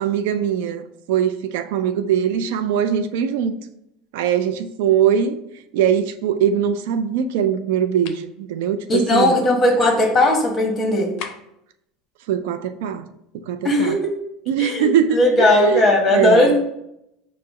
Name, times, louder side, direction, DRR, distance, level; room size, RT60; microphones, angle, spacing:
voice 1, 0.0-3.6 4.1-5.4 5.7-9.4 12.3-13.0 13.3-13.9 14.5-16.5, right 8 dB, 80° right, 0.3 m, -21 dB
sound 1, 8.0-8.3 11.2-11.7, left 7 dB, 65° left, 0.4 m, -35 dB
voice 2, 8.9-11.1 13.6-14.1 14.6-16.6, left 1 dB, 25° left, 1.0 m, -17 dB
4.7 x 2.0 x 4.7 m
supercardioid pair, 135°, 0 cm